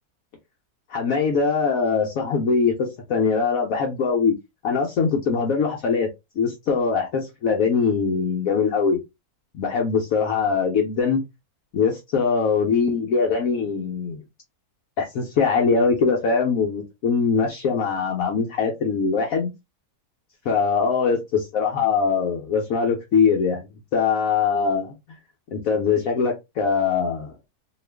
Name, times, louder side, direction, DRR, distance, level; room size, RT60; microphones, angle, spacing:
voice 1, 0.9-4.3 4.6-6.1 6.4-9.0 9.5-11.2 11.7-14.2 15.0-19.5 20.5-24.9 25.5-27.3, left 5 dB, 70° left, 1.0 m, -22 dB
2.8 x 2.4 x 3.2 m
omnidirectional pair, 1.6 m